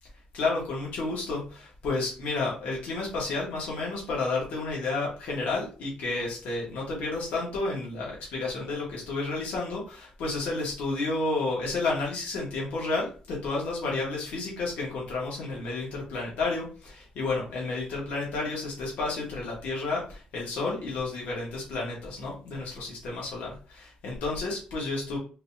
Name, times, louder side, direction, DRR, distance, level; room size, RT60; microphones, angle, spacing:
voice 1, 0.3-25.2, left 3 dB, 90° left, -3 dB, 1.6 m, -31 dB
3.9 x 3.4 x 2.8 m, 0.38 s
cardioid pair, 155°, 3 cm